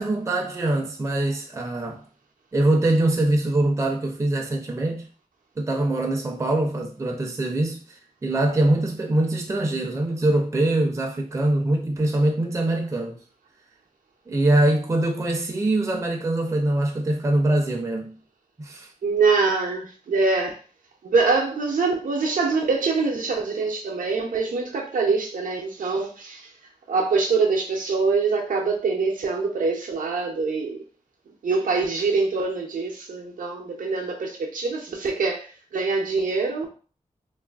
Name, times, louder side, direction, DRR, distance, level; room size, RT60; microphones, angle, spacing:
voice 1, 0.0-2.0 2.5-5.1 5.6-13.2 14.3-18.1 18.6-18.9, right 1 dB, 20° right, 0.4 m, -23 dB
voice 2, 19.0-20.6 21.0-26.5 26.9-30.8 31.4-36.7, right 4 dB, 85° right, 0.5 m, -24 dB
3.1 x 2.4 x 2.3 m
wide cardioid pair, 145°, 13 cm